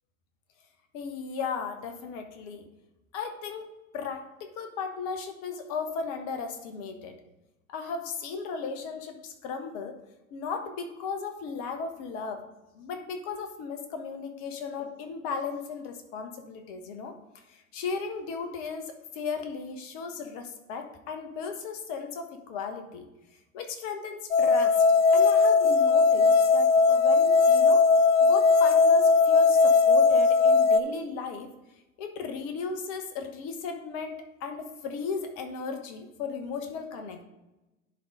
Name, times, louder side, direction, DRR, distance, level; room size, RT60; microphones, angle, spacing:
voice 1, 0.9-2.7 3.1-3.7 3.9-7.1 7.7-10.0 10.3-12.4 12.7-17.1 17.5-23.1 23.5-24.8 25.1-27.8 28.2-31.5 32.0-37.2, left 5 dB, 40° left, 6 dB, 1.2 m, -36 dB
sound 1, 24.3-30.8, left 4 dB, 60° left, 0.7 m, -19 dB
10.5 x 4.0 x 4.8 m, 1.0 s
figure-of-eight pair, 95°, 40 cm